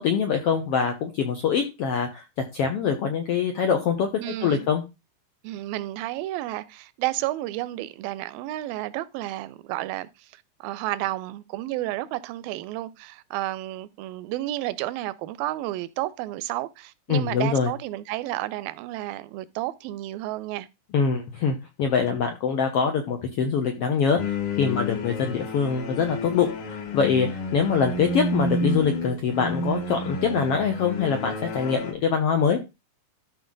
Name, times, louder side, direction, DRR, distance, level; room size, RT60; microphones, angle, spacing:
voice 1, 0.0-2.2 2.5-4.8 17.1-17.7 20.9-32.6, left 6 dB, 85° left, 1.3 m, -24 dB
voice 2, 4.2-4.7 5.4-20.7, right 16 dB, 85° right, 2.3 m, -31 dB
sound 1, 24.2-31.9, left 2 dB, 65° left, 2.9 m, -30 dB
13.0 x 4.5 x 3.8 m
omnidirectional pair, 4.1 m